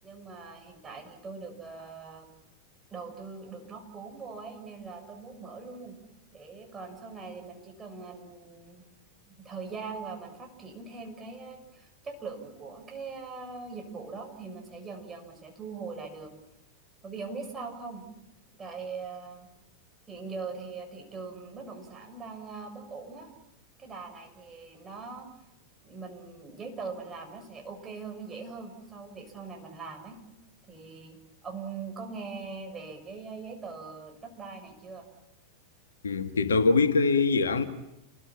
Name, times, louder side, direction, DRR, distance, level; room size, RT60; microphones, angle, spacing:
voice 1, 0.0-2.3 2.9-6.0 6.3-8.8 9.3-16.3 17.0-18.0 18.5-19.5 20.1-23.3 23.8-25.3 25.8-30.2 30.7-35.1, right 4 dB, 20° right, 6.9 m, -41 dB
voice 2, 36.0-37.6, left 4 dB, 70° left, 1.9 m, -23 dB
29.5 x 21.0 x 9.0 m
figure-of-eight pair, 90°, 0 cm